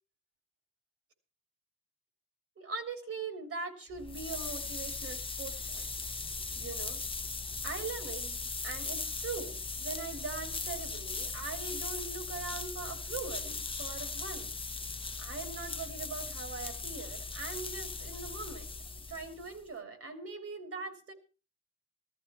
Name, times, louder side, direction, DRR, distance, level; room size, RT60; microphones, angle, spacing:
voice 1, 2.6-5.9 6.6-7.0 7.6-14.6 15.2-18.7 19.1-21.1, right 4 dB, 50° right, 7 dB, 3.5 m, -41 dB
sound 1, 3.9-19.7, left 4 dB, 20° left, 1.0 m, -39 dB
14.0 x 14.0 x 4.5 m, 0.34 s
cardioid pair, 90°, 30 cm